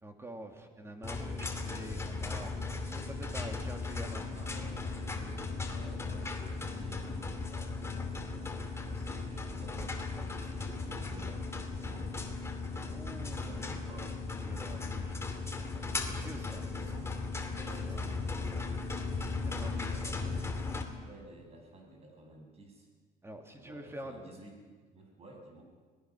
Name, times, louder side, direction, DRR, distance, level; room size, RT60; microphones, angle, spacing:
voice 1, 0.0-4.3 12.9-13.7 14.3-15.4 15.8-16.7 17.5-18.3 19.4-20.2 23.2-24.2, right 1 dB, 15° right, 4 dB, 2.8 m, -47 dB
sound 1, 1.0-20.8, left 3 dB, 15° left, 2.6 m, -37 dB
voice 2, 4.3-10.0 10.3-12.2 13.3-14.2 16.1-17.1 17.5-20.5 21.0-22.9 23.6-25.6, right 2 dB, 35° right, 1 dB, 7.5 m, -53 dB
25.5 x 18.0 x 6.3 m, 1.5 s
cardioid pair, 110°, 17 cm